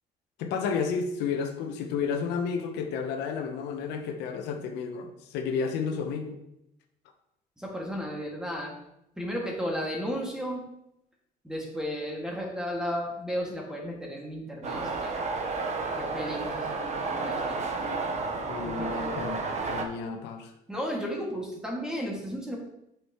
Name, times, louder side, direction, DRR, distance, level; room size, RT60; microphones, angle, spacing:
voice 1, 0.4-6.4 18.5-20.5, left 6 dB, 90° left, 5 dB, 1.0 m, -31 dB
voice 2, 7.6-8.8 9.2-10.6 11.4-15.1 16.0-17.6 18.6-19.3 20.7-22.6, equal, 5° right, -2 dB, 2.1 m, -34 dB
sound 1, 14.6-19.8, right 3 dB, 45° right, 1.1 m, -31 dB
8.0 x 6.1 x 3.1 m, 0.81 s
cardioid pair, 110°, 17 cm